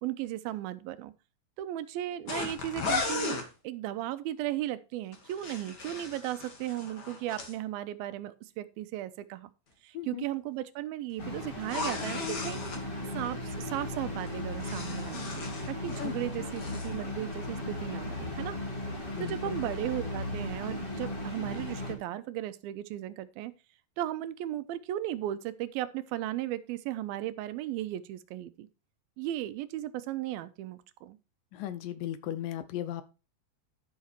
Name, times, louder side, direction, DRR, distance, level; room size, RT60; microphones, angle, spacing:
voice 1, 0.0-1.1 1.6-9.5 9.8-12.9 13.1-18.6 19.2-23.5 24.0-28.7 29.2-31.2, right 13 dB, 85° right, 2.5 m, -36 dB
sound 1, 2.3-3.5 5.1-7.5 11.6-12.8 14.3-16.1 16.4-16.9, left 3 dB, 45° left, 1.4 m, -36 dB
voice 2, 9.9-10.3 16.0-16.1 19.2-19.6 31.5-33.0, left 11 dB, 75° left, 2.2 m, -36 dB
sound 2, 11.2-21.9, left 1 dB, 25° left, 1.3 m, -36 dB
11.5 x 5.7 x 4.4 m
omnidirectional pair, 4.2 m